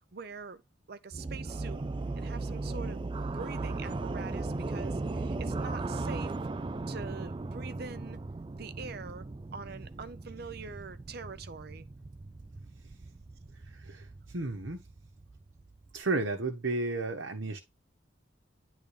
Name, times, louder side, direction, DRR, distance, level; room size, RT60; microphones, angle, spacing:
voice 1, 0.1-0.6 0.9-1.8 2.1-3.0 3.3-6.3 6.9-8.2 8.5-9.3 9.5-11.9, right 4 dB, 55° right, 0.7 m, -44 dB
sound 1, 1.1-16.0, right 3 dB, 25° right, 0.3 m, -37 dB
voice 2, 13.7-14.8 15.9-17.6, right 3 dB, 75° right, 1.1 m, -33 dB
10.0 x 3.7 x 3.3 m
head